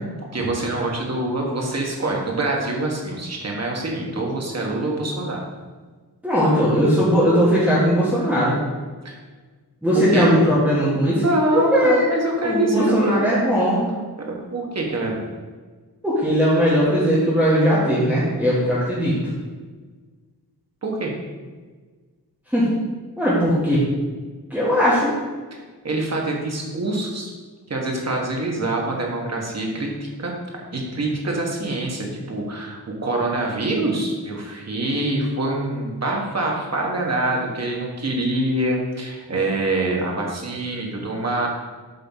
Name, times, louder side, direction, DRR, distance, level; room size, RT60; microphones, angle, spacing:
voice 1, 0.3-5.4 9.0-9.2 9.9-10.3 11.2-13.3 14.2-15.3 20.8-21.1 25.8-27.3 27.7-29.9 30.2-30.3 30.7-41.5, right 2 dB, 40° right, -1 dB, 1.5 m, -25 dB
voice 2, 6.2-8.6 9.8-13.8 16.0-19.2 22.5-22.7 23.2-23.8 24.5-25.1, equal, 5° right, -10 dB, 1.7 m, -19 dB
7.9 x 3.8 x 5.6 m, 1.4 s
wide cardioid pair, 120°, 38 cm